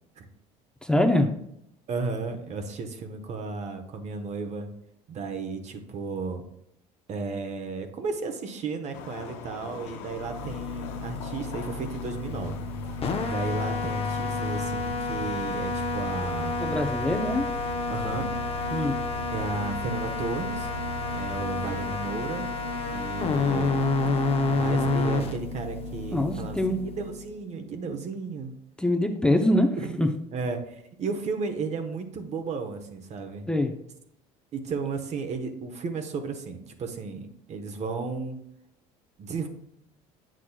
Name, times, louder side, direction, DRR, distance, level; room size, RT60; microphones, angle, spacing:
voice 1, 0.8-1.3 16.6-17.5 18.7-19.0 26.1-26.8 28.8-29.7 30.0-30.1 33.5-33.7, left 1 dB, 5° left, 4 dB, 0.6 m, -24 dB
voice 2, 1.9-4.7 5.1-6.4 7.1-12.6 13.1-16.6 17.9-18.3 19.3-20.7 21.1-22.5 22.9-23.8 24.5-26.6 26.8-28.5 29.8-33.5 34.5-38.4 39.2-39.5, right 4 dB, 50° right, 6 dB, 1.1 m, -34 dB
sound 1, 8.9-14.7, left 7 dB, 85° left, 0.7 m, -43 dB
sound 2, 10.1-27.3, left 3 dB, 40° left, 0.8 m, -30 dB
sound 3, 12.3-12.8 13.2-15.2 15.6-17.7 18.0-20.0 20.4-21.9, equal, 65° left, 1.2 m, -38 dB
8.4 x 6.2 x 2.3 m, 0.75 s
supercardioid pair, 90°, 15 cm